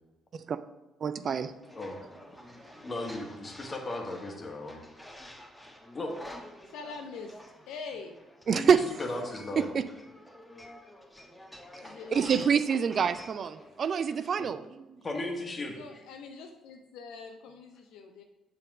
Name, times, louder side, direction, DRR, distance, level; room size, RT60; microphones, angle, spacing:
voice 1, 1.0-1.5 8.5-8.8 9.6-9.7 12.1-14.6, right 7 dB, 50° right, 12 dB, 0.4 m, -26 dB
sound 1, 1.6-14.3, left 1 dB, 5° left, 1.3 m, -49 dB
voice 2, 2.8-4.8 5.9-6.2 8.5-9.7 11.6-12.0 14.4-14.5 15.0-15.8, left 2 dB, 30° left, 1 dB, 1.7 m, -36 dB
voice 3, 6.7-8.2 11.8-12.4 15.7-18.2, left 4 dB, 65° left, 5 dB, 0.5 m, -44 dB
7.4 x 4.2 x 6.0 m, 1.0 s
figure-of-eight pair, 45°, 0 cm